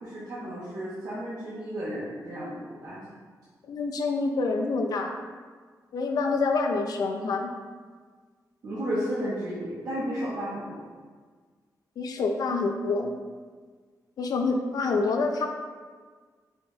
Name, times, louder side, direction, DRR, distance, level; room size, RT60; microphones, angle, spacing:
voice 1, 0.0-3.0 8.6-10.8, equal, 65° right, -10 dB, 0.9 m, -33 dB
voice 2, 3.7-5.2 5.9-7.5 12.0-13.1 14.2-15.5, left 3 dB, 70° left, 3 dB, 0.4 m, -27 dB
4.5 x 2.3 x 3.9 m, 1.5 s
wide cardioid pair, 175°, 7 cm